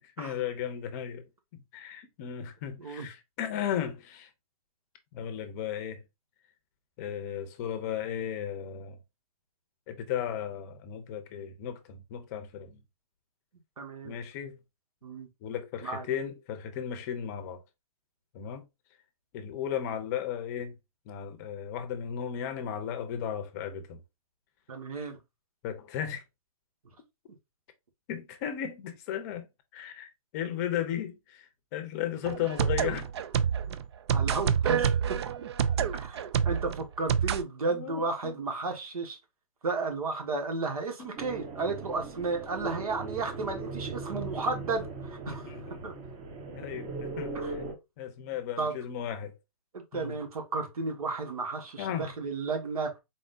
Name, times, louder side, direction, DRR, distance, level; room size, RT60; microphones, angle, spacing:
voice 1, 0.0-4.3 5.1-6.0 7.0-9.0 9.9-12.8 14.0-14.6 15.4-17.6 18.3-18.6 19.3-20.7 21.1-24.0 25.6-26.2 28.1-29.5 29.7-33.1 37.7-38.3 41.0-41.1 45.3-45.8 46.5-47.6 48.0-49.3 49.9-50.2 51.8-52.1, left 9 dB, 30° left, 0.6 m, -35 dB
voice 2, 13.8-14.1 15.0-15.3 15.8-16.0 24.7-25.2 34.1-35.2 35.9-39.2 39.6-45.6 45.8-45.9 47.3-47.5 48.6-48.8 49.7-52.9, right 3 dB, 75° right, 1.5 m, -33 dB
sound 1, 32.2-37.4, right 7 dB, 45° right, 0.4 m, -28 dB
sound 2, 41.2-47.7, right 3 dB, 25° right, 1.0 m, -39 dB
4.2 x 3.6 x 2.6 m
hypercardioid pair, 145°, 18 cm